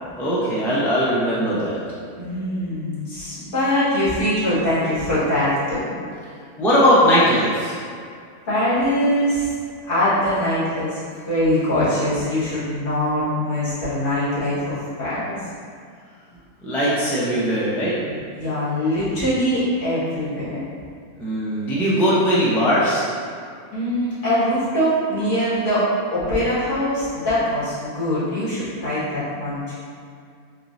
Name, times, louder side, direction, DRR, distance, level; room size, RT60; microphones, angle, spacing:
voice 1, 0.1-1.8 6.6-7.8 16.6-17.9 21.2-23.1, equal, 5° left, -9 dB, 0.3 m, -19 dB
voice 2, 2.1-5.9 8.5-9.5 9.9-11.0 11.2-15.4 18.1-20.7 23.7-29.7, equal, 65° left, -12 dB, 2.1 m, -22 dB
4.4 x 3.1 x 2.6 m, 2.2 s
omnidirectional pair, 1.6 m